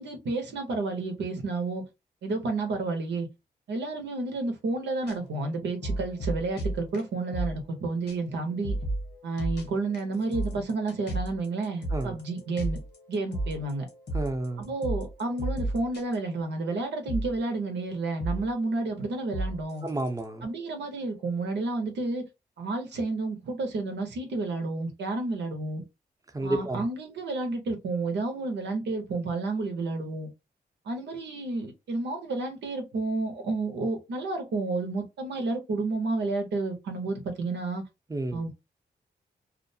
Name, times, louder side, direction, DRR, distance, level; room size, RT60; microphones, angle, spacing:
voice 1, 0.0-1.9 2.2-3.3 3.7-8.8 9.2-12.8 13.1-13.9 14.6-19.8 20.4-22.2 22.6-25.8 26.4-30.3 30.8-37.8 38.3-38.6, right 3 dB, 90° right, 0.8 m, -31 dB
sound 1, 5.0-7.8 8.1-8.2 8.5-16.8 17.1-21.8, right 1 dB, 80° left, 1.0 m, -35 dB
voice 2, 14.1-14.6 19.8-20.5 26.3-26.8 38.1-38.5, right 2 dB, 20° right, 0.6 m, -31 dB
2.5 x 2.1 x 2.6 m
cardioid pair, 60°, 18 cm